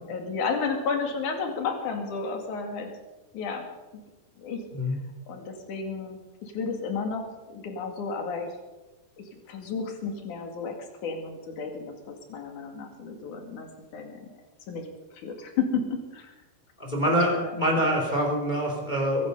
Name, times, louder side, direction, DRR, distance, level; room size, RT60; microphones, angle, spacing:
voice 1, 0.1-2.9 3.3-3.7 4.4-4.6 5.3-8.5 9.2-10.7 11.0-13.7 13.9-14.3 14.7-14.9 15.1-16.3 17.0-18.0, left 5 dB, 55° left, 3 dB, 3.4 m, -32 dB
voice 2, 16.8-19.3, equal, 15° left, 1 dB, 2.5 m, -25 dB
22.5 x 11.5 x 5.4 m, 1.1 s
omnidirectional pair, 4.5 m